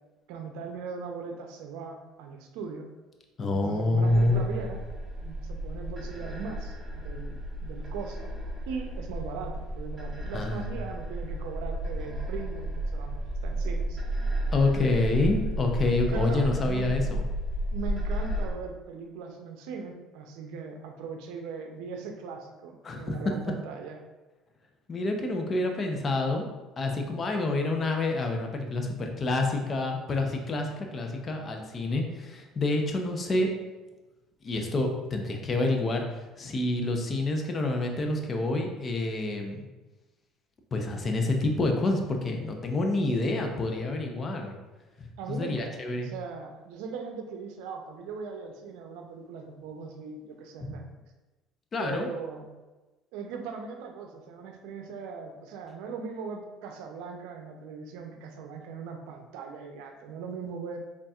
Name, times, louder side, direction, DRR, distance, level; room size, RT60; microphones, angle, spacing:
voice 1, 0.3-2.9 3.5-4.8 5.2-8.3 8.7-14.0 16.1-17.0 17.7-24.0 45.2-45.8 46.0-50.8 51.8-52.5 53.1-60.8, right 5 dB, 80° right, 4 dB, 0.5 m, -39 dB
voice 2, 3.4-4.6 10.3-10.6 14.5-17.2 22.8-23.2 24.9-26.5 26.8-33.5 34.4-36.0 36.4-39.7 40.7-44.6 45.0-46.1 50.6-50.7 51.7-52.1, left 2 dB, 35° left, 3 dB, 0.6 m, -27 dB
sound 1, 4.0-18.5, right 1 dB, 15° right, 1.3 m, -33 dB
4.1 x 3.7 x 2.4 m, 1.1 s
supercardioid pair, 95°, 0 cm